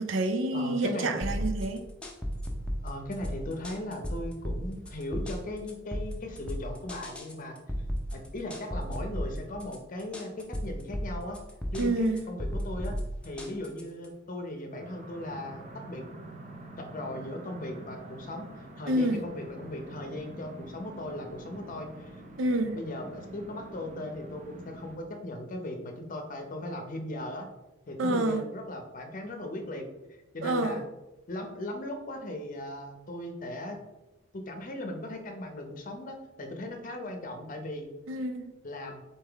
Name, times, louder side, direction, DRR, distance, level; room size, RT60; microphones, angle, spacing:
voice 1, 0.0-1.9 11.8-12.2 18.9-19.2 22.4-22.8 28.0-28.4 30.4-30.8 38.1-38.5, right 1 dB, 85° right, 7 dB, 0.5 m, -28 dB
voice 2, 0.5-1.2 2.8-7.6 8.1-11.4 11.7-12.9 13.2-16.0 16.8-22.2 22.7-27.5 27.9-30.8 31.3-33.8 34.3-37.9 38.6-39.0, left 1 dB, 45° left, 4 dB, 0.7 m, -38 dB
sound 1, 1.2-14.1, equal, 5° left, 0.6 m, -35 dB
sound 2, 14.7-25.0, right 1 dB, 40° right, 0.6 m, -46 dB
4.2 x 3.6 x 3.4 m, 1.0 s
head